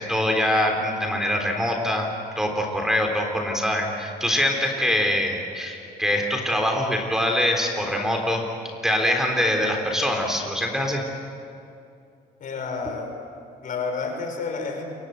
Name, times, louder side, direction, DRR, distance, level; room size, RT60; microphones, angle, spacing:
voice 1, 0.0-2.1 2.4-8.5 8.8-11.0, left 1 dB, 5° right, 2 dB, 3.7 m, -24 dB
voice 2, 12.4-13.1 13.6-14.8, left 4 dB, 50° left, 3 dB, 5.9 m, -30 dB
28.5 x 24.5 x 8.1 m, 2.6 s
cardioid pair, 110°, 17 cm